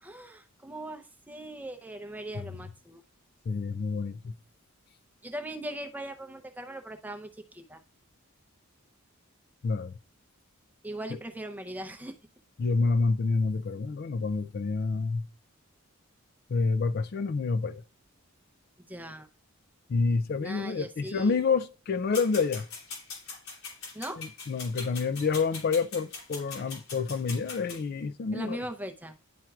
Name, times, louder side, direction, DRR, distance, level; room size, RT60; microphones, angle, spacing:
voice 1, 0.0-3.0 5.2-7.8 10.8-12.1 18.9-19.3 20.4-21.4 23.9-24.2 28.3-29.1, right 1 dB, 10° right, 0.6 m, -39 dB
voice 2, 3.5-4.3 9.6-9.9 12.6-15.2 16.5-17.8 19.9-22.7 24.2-28.6, left 4 dB, 45° left, 0.4 m, -28 dB
sound 1, 22.1-27.8, left 4 dB, 90° left, 3.0 m, -41 dB
11.0 x 4.5 x 2.3 m
head